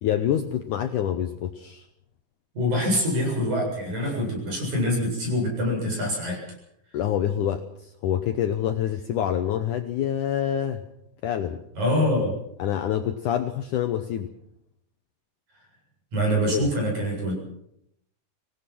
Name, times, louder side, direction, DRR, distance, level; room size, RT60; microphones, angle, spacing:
voice 1, 0.0-1.9 6.9-10.8 11.2-11.6 12.6-14.3 16.5-16.7, left 10 dB, 70° left, 8 dB, 2.0 m, -26 dB
voice 2, 2.6-6.4 11.7-12.3 16.1-17.3, equal, 50° right, 0 dB, 9.1 m, -25 dB
26.5 x 18.0 x 6.2 m, 0.79 s
omnidirectional pair, 4.5 m